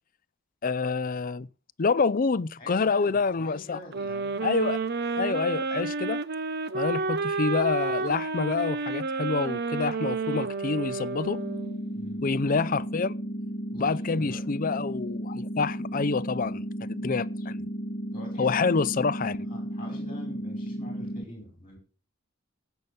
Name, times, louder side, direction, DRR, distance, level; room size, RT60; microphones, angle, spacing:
voice 1, 0.6-1.5 1.8-3.8 4.4-4.8 5.2-6.2 6.7-11.4 12.2-13.1 13.8-17.7 18.4-19.4, left 4 dB, 40° left, 0.5 m, -27 dB
voice 2, 2.6-4.5 11.9-12.2 13.7-14.4 18.1-18.6 19.4-21.8, left 1 dB, 25° left, 4.7 m, -45 dB
sound 1, 3.9-11.9, right 4 dB, 50° right, 0.7 m, -30 dB
sound 2, 11.2-21.2, equal, 65° left, 1.5 m, -34 dB
15.0 x 5.8 x 6.8 m
head